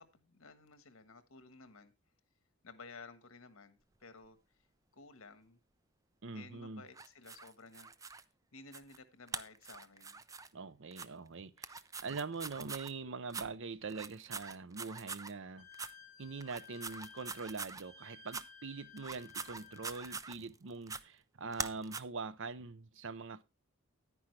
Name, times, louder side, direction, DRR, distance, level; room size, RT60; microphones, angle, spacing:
voice 1, 0.0-1.9 2.6-4.4 4.9-5.6 6.3-7.9 8.5-10.2, left 4 dB, 80° left, 1.4 m, -55 dB
voice 2, 6.2-6.8 10.5-15.7 16.2-23.4, right 4 dB, 65° right, 0.6 m, -43 dB
sound 1, 6.9-8.2 8.7-9.0 9.3-10.5 10.9-11.1 11.6-12.9 13.3-13.5 13.9-15.3 15.7-15.9 16.4-17.8 18.3-18.4 19.0-20.5 20.9-21.0 21.5-22.0, right 5 dB, 15° right, 0.4 m, -44 dB
Wind instrument woodwind instrument, 15.6-20.2, left 7 dB, 35° left, 1.4 m, -56 dB
10.0 x 9.9 x 3.2 m
head